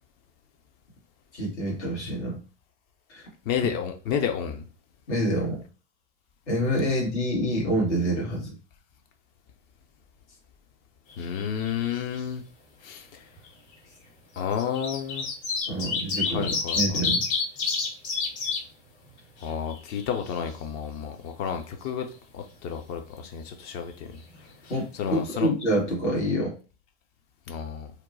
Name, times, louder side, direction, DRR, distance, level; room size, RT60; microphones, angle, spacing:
voice 1, 1.3-2.4 3.1-3.2 5.1-5.6 6.5-8.5 15.7-17.2 24.7-26.5, equal, 70° left, 1.4 m, -27 dB
voice 2, 3.5-4.6 11.2-12.4 12.8-13.2 14.4-15.3 16.3-17.0 19.4-22.1 22.3-24.1 25.0-25.5 27.5-27.9, left 8 dB, 30° left, 0.3 m, -31 dB
sound 1, 11.1-11.9 12.1-12.2 13.4-13.5 14.4-18.6 19.1-19.2 19.4-20.5 24.3-24.4 24.7-24.8, left 4 dB, 45° left, 1.4 m, -29 dB
2.8 x 2.0 x 2.5 m
figure-of-eight pair, 90°, 36 cm